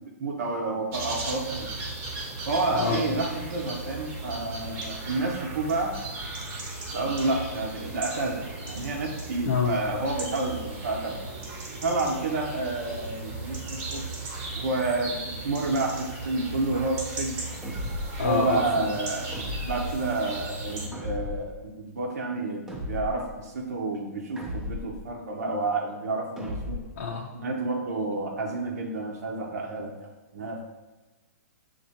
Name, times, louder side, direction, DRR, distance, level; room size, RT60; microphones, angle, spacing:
voice 1, 0.2-1.7 2.5-5.9 6.9-11.2 11.8-14.0 14.5-17.3 18.2-19.3 19.6-26.8 27.3-30.6, right 2 dB, 70° right, -1 dB, 0.7 m, -29 dB
sound 1, 0.9-20.9, right 2 dB, 25° right, 0.8 m, -36 dB
voice 2, 2.7-3.1 9.5-9.8 18.2-18.8 27.0-27.3, left 5 dB, 65° left, -2 dB, 0.6 m, -26 dB
sound 2, 17.6-18.3 19.3-20.0 20.9-21.6 22.7-23.3 24.4-25.0 26.4-27.0, left 1 dB, 5° right, 0.5 m, -35 dB
6.4 x 2.6 x 2.8 m, 1.1 s
hypercardioid pair, 150°, 9 cm